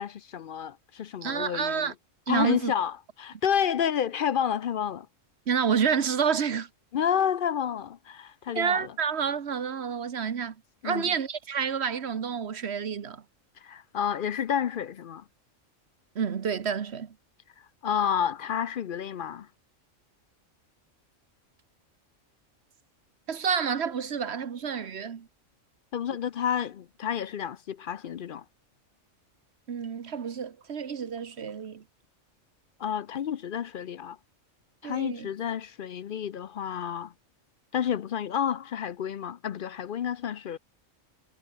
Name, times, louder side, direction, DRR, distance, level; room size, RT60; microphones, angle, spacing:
voice 1, 0.0-1.9 2.3-5.1 6.9-8.9 10.8-11.1 13.6-15.2 17.8-19.5 25.9-28.4 32.8-34.2 34.8-37.1 37.7-40.6, left 8 dB, 55° left, 0.6 m, -30 dB
voice 2, 1.2-1.9 2.3-2.7 5.5-6.7 8.5-10.5 10.8-13.2 16.1-17.1 23.3-25.3 29.7-31.8 34.8-35.3, right 7 dB, 60° right, 1.3 m, -29 dB
omnidirectional pair, 1.3 m